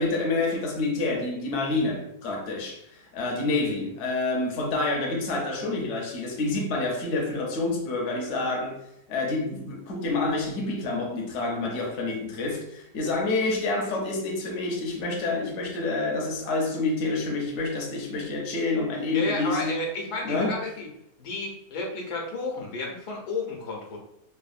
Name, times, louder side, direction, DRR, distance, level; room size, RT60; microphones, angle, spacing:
voice 1, 0.0-8.8 9.1-19.8 20.2-20.6, left 3 dB, 60° left, 0.8 m, -28 dB
voice 2, 19.1-20.9 21.2-24.0, left 2 dB, 85° left, 1.3 m, -32 dB
3.4 x 2.0 x 2.4 m
omnidirectional pair, 1.6 m